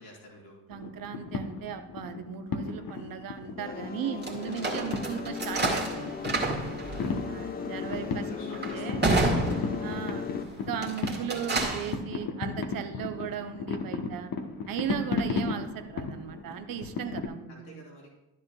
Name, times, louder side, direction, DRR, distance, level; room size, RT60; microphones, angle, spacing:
voice 1, 0.0-0.6 4.2-5.0 7.4-9.6 17.5-18.1, equal, 70° left, -3 dB, 2.7 m, -51 dB
sound 1, 0.7-17.3, left 4 dB, 45° left, 1.1 m, -36 dB
voice 2, 0.7-6.6 7.3-9.0 9.8-10.3 10.7-14.3 14.7-17.8, right 9 dB, 45° right, 8 dB, 0.8 m, -37 dB
sound 2, 3.6-10.4, left 7 dB, 20° left, 0.4 m, -38 dB
sound 3, 4.2-10.3 10.7-11.9, right 2 dB, 20° right, 1.8 m, -30 dB
12.5 x 7.0 x 2.3 m, 0.89 s
figure-of-eight pair, 40°, 48 cm